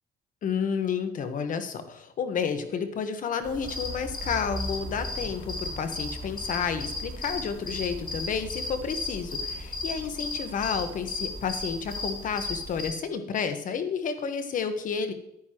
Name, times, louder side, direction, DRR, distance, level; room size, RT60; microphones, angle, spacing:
voice 1, 0.4-15.1, left 6 dB, 50° left, 9 dB, 1.2 m, -31 dB
sound 1, 3.4-12.9, left 2 dB, 30° left, 2.8 m, -35 dB
10.5 x 9.7 x 3.0 m, 0.77 s
cardioid pair, 110°, 17 cm